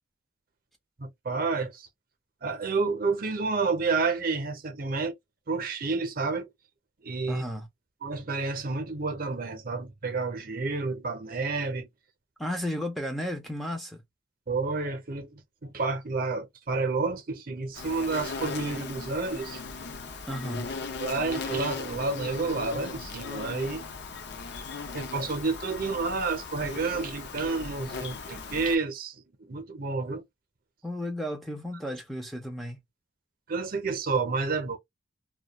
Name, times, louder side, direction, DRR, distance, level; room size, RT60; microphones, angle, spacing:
voice 1, 1.0-1.9 2.4-5.1 5.5-6.5 7.0-7.4 8.0-11.9 14.5-19.6 21.0-23.8 24.9-30.2 33.5-34.8, right 4 dB, 50° right, 0.6 m, -30 dB
voice 2, 7.3-7.7 12.4-14.0 20.3-20.7 30.8-32.8, equal, ahead, 0.4 m, -33 dB
Insect, 17.7-28.8, left 4 dB, 60° left, 0.5 m, -38 dB
2.3 x 2.2 x 2.8 m
head